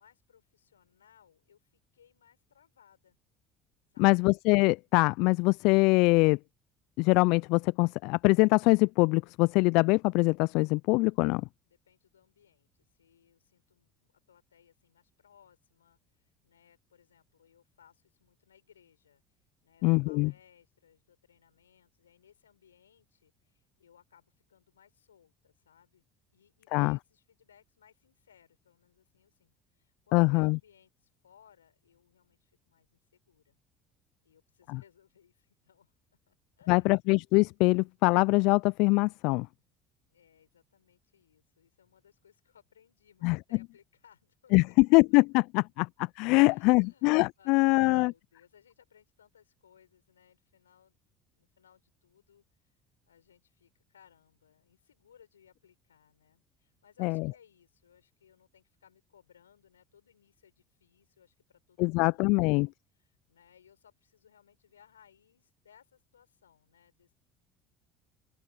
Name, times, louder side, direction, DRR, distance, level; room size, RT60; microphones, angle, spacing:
voice 1, 0.0-3.2 3.9-4.1 11.8-26.0 26.3-33.6 34.2-35.9 36.3-36.9 40.1-44.7 46.4-47.1 47.4-51.0 51.3-52.8 53.1-67.1, left 8 dB, 85° left, 7.2 m, -64 dB
voice 2, 4.0-6.4 7.0-11.4 19.8-20.3 26.7-27.0 30.1-30.6 34.7-34.8 36.7-39.5 43.2-43.4 44.5-45.9 46.2-48.1 57.0-57.2 61.8-62.7, left 27 dB, 65° left, 0.4 m, -23 dB
open air
hypercardioid pair, 60°, 0 cm